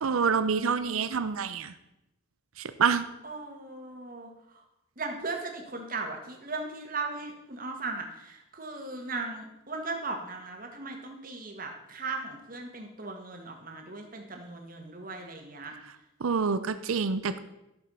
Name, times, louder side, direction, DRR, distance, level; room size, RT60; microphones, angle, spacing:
voice 1, 0.0-1.7 2.6-3.0 16.2-17.4, right 5 dB, 80° right, 11 dB, 0.6 m, -27 dB
voice 2, 3.2-4.6 5.0-15.7, right 3 dB, 40° right, 3 dB, 1.7 m, -37 dB
12.0 x 6.6 x 5.5 m, 0.90 s
head